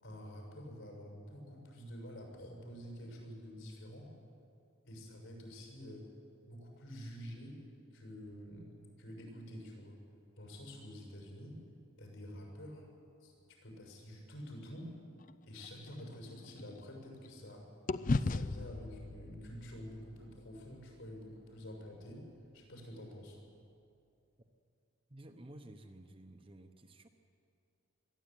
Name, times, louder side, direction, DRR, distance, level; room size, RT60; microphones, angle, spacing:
voice 1, 0.0-4.1 4.8-6.1 6.5-7.6 7.9-8.7 9.0-10.0 10.4-11.6 12.0-12.9 13.2-15.0 15.5-17.7 18.1-22.2 22.5-23.4, equal, 70° left, 1 dB, 6.6 m, -48 dB
sound 1, 15.2-17.5 17.9-22.1, left 3 dB, 40° left, 0.4 m, -39 dB
voice 2, 25.1-27.1, right 1 dB, 25° right, 5 dB, 1.0 m, -53 dB
22.0 x 13.5 x 9.2 m, 2.5 s
head